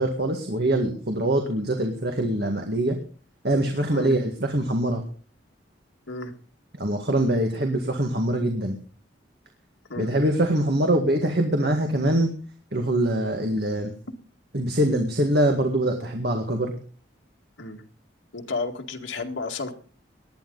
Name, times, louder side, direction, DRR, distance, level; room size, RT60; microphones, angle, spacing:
voice 1, 0.0-3.0 3.4-5.0 6.8-8.8 10.0-12.3 12.7-13.9 14.5-16.7, right 1 dB, 55° right, 3 dB, 2.0 m, -23 dB
voice 2, 18.3-19.7, left 3 dB, 80° left, 3 dB, 2.1 m, -32 dB
19.5 x 12.0 x 4.1 m, 0.40 s
head